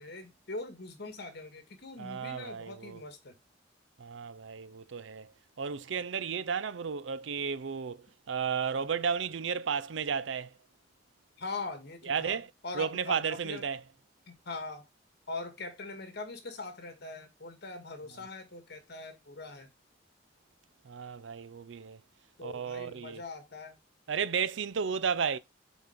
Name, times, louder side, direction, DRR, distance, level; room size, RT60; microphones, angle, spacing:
voice 1, 0.0-3.4 11.4-12.4 12.6-13.6 14.3-14.9 15.3-19.7 22.4-23.8, left 3 dB, 60° left, 1.8 m, -42 dB
voice 2, 2.0-3.0 4.0-5.3 5.6-10.5 12.0-12.5 12.7-13.8 20.8-22.0 22.4-23.2 24.1-25.4, right 6 dB, 80° right, 0.5 m, -33 dB
7.1 x 4.2 x 5.0 m
head